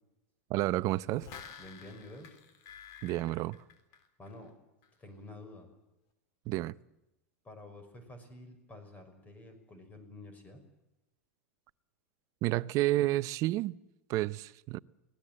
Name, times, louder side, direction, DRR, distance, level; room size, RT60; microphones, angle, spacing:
voice 1, 0.5-1.3 3.0-3.6 6.5-6.8 12.4-13.8 14.1-14.8, right 16 dB, 45° right, 0.7 m, -30 dB
sound 1, 1.0-4.5 4.8-4.9, left 7 dB, 50° left, 3.3 m, -51 dB
voice 2, 1.6-2.4 4.2-4.5 5.0-5.7 7.4-10.6, left 2 dB, 20° left, 6.0 m, -50 dB
24.5 x 18.0 x 7.7 m
hypercardioid pair, 100°, 8 cm